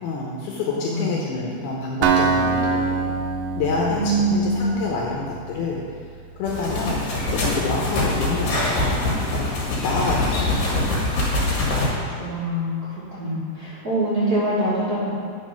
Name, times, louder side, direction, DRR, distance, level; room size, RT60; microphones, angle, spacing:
voice 1, 0.0-3.1 3.6-5.8 6.4-7.0 7.3-9.1 9.8-11.2, left 3 dB, 80° left, -3 dB, 2.7 m, -27 dB
voice 2, 0.7-1.2 3.9-4.7 12.2-15.1, right 1 dB, 40° right, -11 dB, 1.4 m, -24 dB
Acoustic guitar, 2.0-5.9, right 4 dB, 80° right, 2.0 m, -24 dB
sound 1, 6.5-11.9, left 2 dB, 60° left, 3.4 m, -23 dB
9.2 x 5.2 x 5.8 m, 2.2 s
omnidirectional pair, 4.6 m